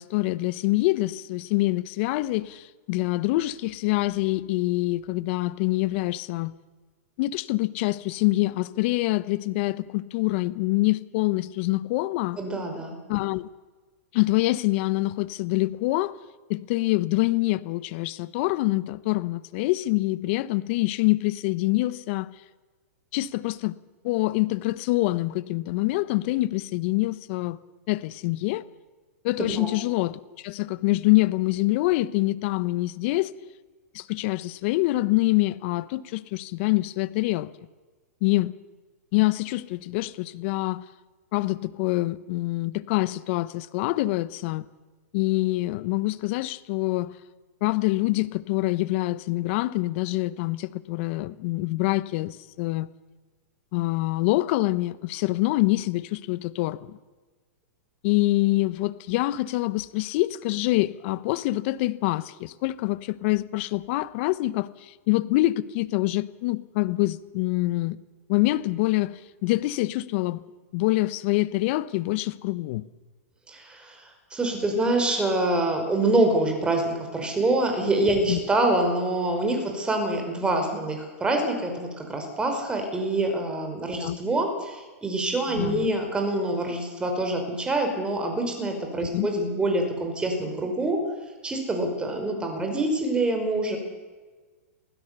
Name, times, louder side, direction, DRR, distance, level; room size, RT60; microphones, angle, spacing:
voice 1, 0.0-6.5 7.2-12.4 13.1-13.5 14.1-16.2 16.5-22.3 23.1-23.7 24.0-27.6 27.9-28.7 29.2-33.3 33.9-37.5 38.2-38.5 39.1-40.8 41.3-44.6 45.1-47.2 47.6-52.9 53.7-57.0 58.0-68.0 68.3-70.4 70.7-72.8 78.3-78.4 84.0-84.2 85.6-85.9 89.1-89.3, left 19 dB, 50° left, 17 dB, 1.0 m, -25 dB
voice 2, 12.4-13.0 29.5-29.7 73.5-91.0 91.4-93.8, right 2 dB, 10° right, 4 dB, 5.2 m, -26 dB
23.5 x 16.0 x 6.9 m, 1.3 s
hypercardioid pair, 125°, 8 cm